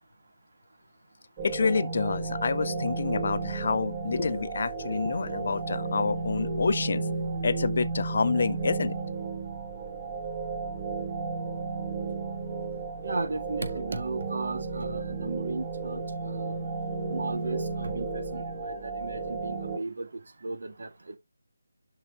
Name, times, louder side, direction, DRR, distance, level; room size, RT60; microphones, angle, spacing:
voice 1, 1.4-7.0 7.4-8.9, left 4 dB, 45° left, 0.5 m, -28 dB
sound 1, 1.4-19.8, right 4 dB, 20° right, 1.3 m, -33 dB
voice 2, 13.0-16.7 17.1-21.2, right 3 dB, 50° right, 1.5 m, -35 dB
12.0 x 4.1 x 2.4 m
figure-of-eight pair, 155°, 0 cm